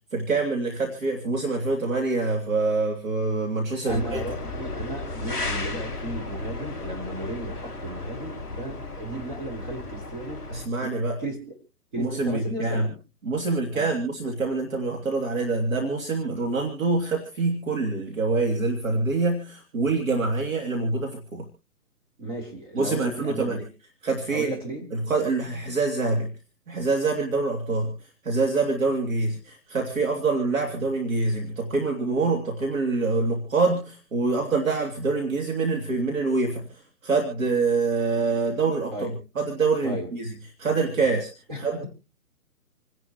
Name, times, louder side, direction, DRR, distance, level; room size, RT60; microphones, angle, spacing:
voice 1, 0.1-4.2 10.5-11.2 12.0-12.9 13.2-21.5 22.7-23.7 24.0-24.5 24.9-26.3 26.7-27.9 28.2-40.3 40.6-41.3 41.6-41.8, right 3 dB, 60° right, 3.2 m, -25 dB
sound 1, 3.9-10.7, left 2 dB, 5° right, 1.1 m, -34 dB
voice 2, 3.9-10.4 10.8-10.9 11.2-11.6 11.9-13.0 13.7-13.9 22.2-23.6 24.3-24.9 38.9-39.1 39.8-40.1 41.0-41.2 41.5-41.9, right 1 dB, 30° right, 4.0 m, -35 dB
28.5 x 11.0 x 3.1 m
hypercardioid pair, 165°, 45 cm